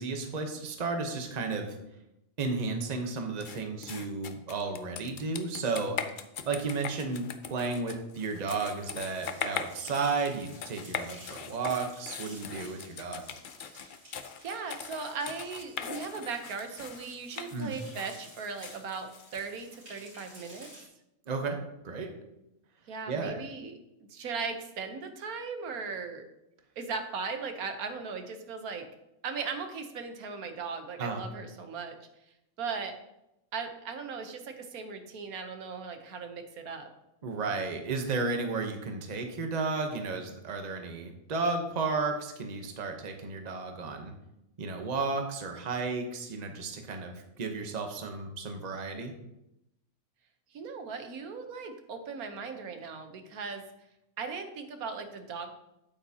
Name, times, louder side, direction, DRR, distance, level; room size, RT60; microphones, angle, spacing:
voice 1, 0.0-1.8 2.4-6.0 6.5-13.2 17.5-17.8 21.3-22.2 23.1-23.4 31.0-31.2 37.2-44.1 44.6-49.1, right 4 dB, 35° right, 4 dB, 0.9 m, -33 dB
sound 1, 3.4-19.8, left 7 dB, 60° left, 0.5 m, -41 dB
sound 2, 9.1-20.9, right 1 dB, 65° right, 3.7 m, -54 dB
voice 2, 14.4-20.7 22.9-23.7 24.1-26.2 26.8-28.8 29.2-31.9 32.6-32.9 33.5-36.9 50.5-53.6 54.2-55.6, right 5 dB, 85° right, 6 dB, 1.4 m, -38 dB
8.6 x 8.5 x 2.8 m, 0.86 s
omnidirectional pair, 1.5 m